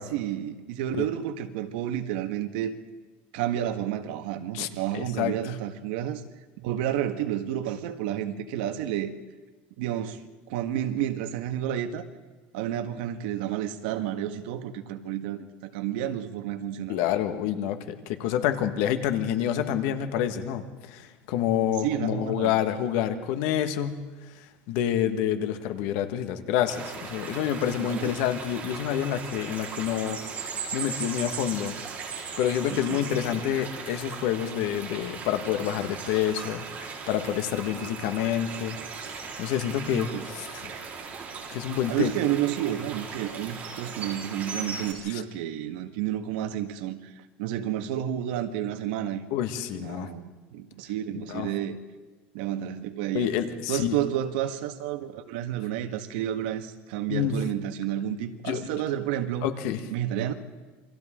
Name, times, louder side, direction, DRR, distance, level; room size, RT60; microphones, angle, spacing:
voice 1, 0.1-2.8 3.3-6.2 6.6-9.1 9.8-10.2 10.5-12.0 12.5-17.0 21.8-22.6 27.8-28.1 32.7-33.4 39.9-40.3 41.9-49.2 49.7-51.8 52.3-53.3 53.7-59.5 59.9-60.3, right 11 dB, 80° right, 7 dB, 1.6 m, -30 dB
voice 2, 4.9-5.5 16.9-24.0 24.3-30.2 30.7-31.7 32.4-38.8 39.1-40.6 41.5-42.1 45.1-45.2 49.3-50.1 51.3-51.5 53.1-54.0 57.1-57.4 58.4-58.7 59.4-59.8, left 10 dB, 70° left, 8 dB, 1.7 m, -28 dB
sound 1, 26.7-44.9, right 5 dB, 30° right, 4.3 m, -38 dB
28.5 x 24.5 x 3.8 m, 1.4 s
cardioid pair, 145°, 5 cm